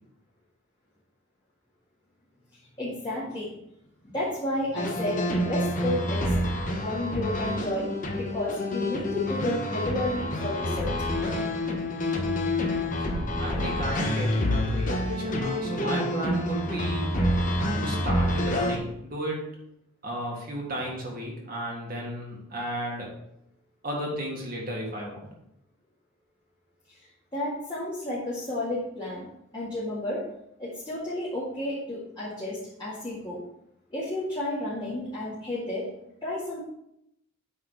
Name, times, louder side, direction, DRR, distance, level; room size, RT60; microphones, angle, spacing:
voice 1, 2.8-3.5 4.0-6.4 6.7-7.9 8.2-11.0 27.3-29.3 29.5-30.2 30.6-33.4 33.9-35.9 36.2-36.6, left 1 dB, 20° left, -9 dB, 2.0 m, -32 dB
sound 1, 4.8-18.8, left 1 dB, 40° left, 1.0 m, -28 dB
voice 2, 12.8-17.3 17.8-19.5 20.0-23.1 23.8-25.2, equal, 40° right, -2 dB, 1.8 m, -34 dB
8.4 x 4.2 x 4.7 m, 0.78 s
head